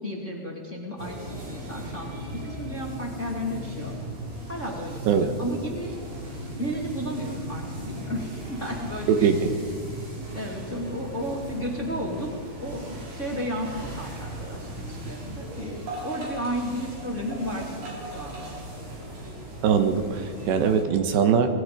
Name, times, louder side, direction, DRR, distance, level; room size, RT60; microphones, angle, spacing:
voice 1, 0.0-2.1 2.4-3.9 4.5-5.9 6.6-9.3 10.3-18.5, equal, 20° left, -1 dB, 2.2 m, -33 dB
sound 1, 1.0-20.8, right 1 dB, 60° right, 7.3 m, -37 dB
voice 2, 9.1-9.5 19.6-21.5, right 7 dB, 75° right, 7 dB, 3.5 m, -21 dB
26.5 x 20.5 x 5.2 m, 2.2 s
omnidirectional pair, 5.1 m